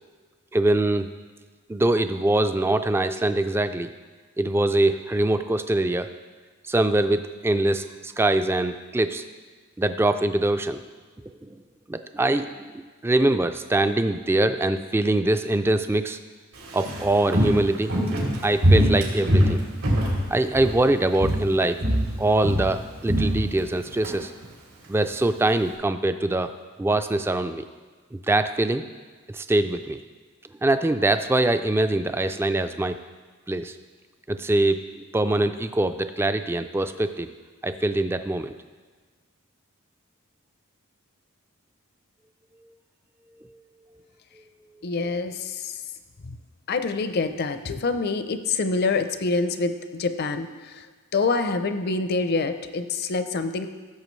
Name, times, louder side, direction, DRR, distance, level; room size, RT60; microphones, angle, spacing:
voice 1, 0.5-1.1 1.7-3.9 4.4-6.1 6.7-9.2 9.8-10.8 11.4-11.6 11.9-16.2 16.7-17.9 18.4-19.6 20.3-21.8 22.2-24.3 24.9-26.5 26.8-27.7 28.1-28.8 29.3-30.0 30.6-33.0 33.5-33.8 34.3-37.3 37.6-38.5, right 2 dB, 10° right, 9 dB, 0.3 m, -23 dB
Walk footsteps, 16.5-20.9 21.1-21.5 21.8-24.1 24.4-24.5, equal, 90° right, 3.0 m, -23 dB
voice 2, 44.8-45.8 46.2-46.4 46.7-50.9 51.1-53.7, left 3 dB, 50° left, 10 dB, 0.6 m, -26 dB
16.0 x 7.3 x 3.2 m, 1.5 s
head